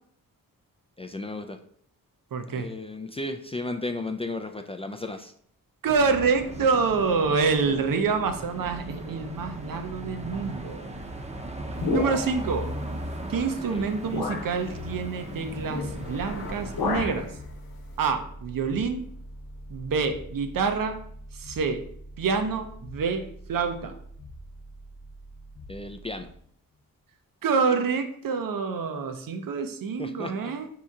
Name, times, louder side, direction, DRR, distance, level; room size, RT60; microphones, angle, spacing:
voice 1, 1.0-1.6 2.5-5.3 13.7-13.9 25.7-26.3 30.0-30.5, left 2 dB, 15° left, 6 dB, 0.3 m, -34 dB
voice 2, 2.3-2.7 5.8-10.9 11.9-12.7 13.3-17.3 18.0-19.1 19.7-21.0 21.3-21.8 22.2-24.0 27.4-30.7, right 5 dB, 65° right, 7 dB, 0.7 m, -27 dB
sound 1, 5.9-17.1, right 1 dB, 20° right, 0.7 m, -38 dB
sound 2, 11.8-12.6 13.4-13.5 14.1-14.5 15.9-16.2 16.5-17.3, left 4 dB, 75° left, 0.9 m, -30 dB
sound 3, 15.3-26.4, left 1 dB, 35° left, 0.8 m, -42 dB
4.2 x 2.8 x 3.6 m, 0.63 s
cardioid pair, 55°, 36 cm